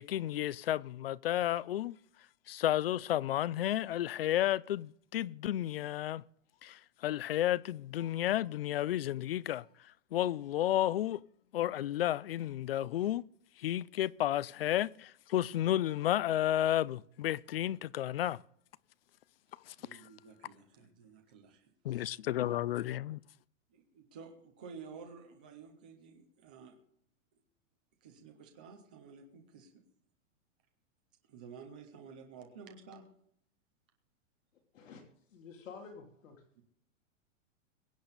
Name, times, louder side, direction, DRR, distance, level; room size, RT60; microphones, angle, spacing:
voice 1, 0.0-2.0 2.5-6.2 6.6-9.6 10.1-11.2 11.5-13.2 13.6-18.4 19.7-19.8 21.8-23.2, left 12 dB, 50° left, 0.4 m, -32 dB
voice 2, 19.8-22.1 23.7-26.8 28.0-29.8 31.3-33.0 36.6-36.7, right 5 dB, 10° right, 0.4 m, -52 dB
voice 3, 35.3-36.6, left 5 dB, 80° left, 3.2 m, -50 dB
22.5 x 8.5 x 4.0 m
supercardioid pair, 175°, 38 cm